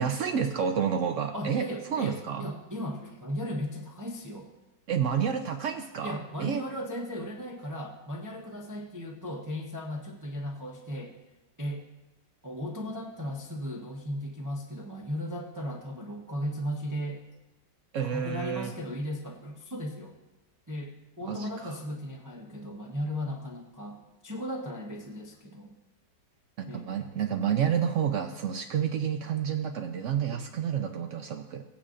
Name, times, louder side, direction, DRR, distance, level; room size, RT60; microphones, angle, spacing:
voice 1, 0.0-2.5 4.9-6.6 17.9-18.7 21.2-21.8 26.6-31.6, right 8 dB, 80° right, 5 dB, 0.6 m, -30 dB
voice 2, 1.3-4.5 6.0-11.2 11.6-11.8 12.4-17.3 18.0-20.1 20.7-25.8 26.7-26.9, equal, 20° right, -1 dB, 0.5 m, -36 dB
17.0 x 8.7 x 2.5 m, 1.1 s
omnidirectional pair, 1.9 m